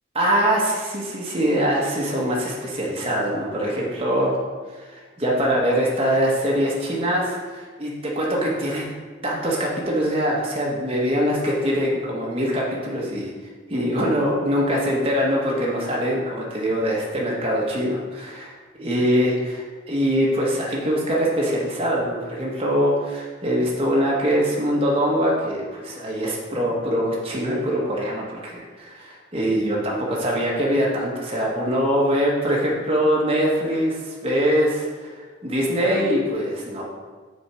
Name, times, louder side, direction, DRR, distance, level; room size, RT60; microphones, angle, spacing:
voice 1, 0.1-4.4 4.7-8.9 9.2-13.3 13.7-18.5 18.8-33.9 34.2-35.1 35.4-36.8, equal, 30° right, -4 dB, 1.2 m, -23 dB
7.0 x 4.5 x 4.7 m, 1.4 s
head